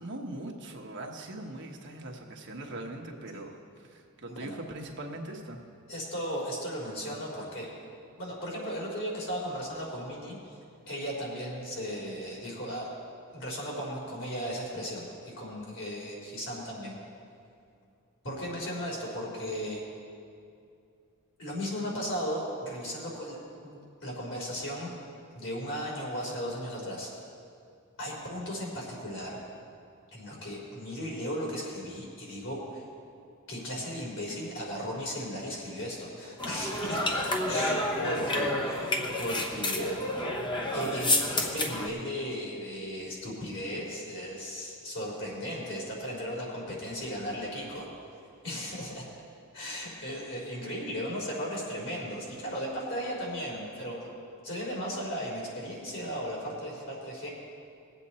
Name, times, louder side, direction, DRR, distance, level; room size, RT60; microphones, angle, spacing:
voice 1, 0.0-5.6 37.5-37.8, right 1 dB, 55° right, 1 dB, 1.2 m, -41 dB
voice 2, 4.3-4.6 5.9-7.7 8.2-10.4 10.9-12.9 13.3-15.1 15.4-17.0 18.2-19.8 21.4-24.9 25.3-27.1 28.0-29.4 30.1-32.8 33.5-37.7 38.0-40.0 40.7-47.9 48.4-49.1 49.5-54.1 54.4-57.3, equal, 60° left, -4 dB, 3.8 m, -36 dB
sound 1, 36.4-41.9, left 1 dB, 20° left, 1.0 m, -29 dB
20.5 x 8.2 x 4.2 m, 2.5 s
head